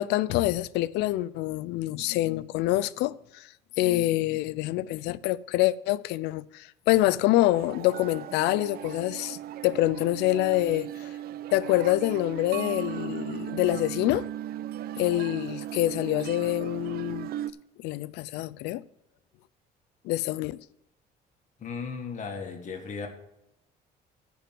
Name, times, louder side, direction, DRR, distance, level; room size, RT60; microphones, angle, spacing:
voice 1, 0.0-3.5 3.8-9.4 9.6-11.1 11.5-14.3 15.0-17.3 17.8-18.8 20.0-20.6, left 16 dB, 90° left, 0.4 m, -26 dB
sound 1, 7.5-17.5, right 12 dB, 65° right, 0.5 m, -37 dB
voice 2, 21.6-23.1, left 5 dB, 45° left, 1.8 m, -36 dB
10.0 x 4.7 x 7.5 m
cardioid pair, 110°, 17 cm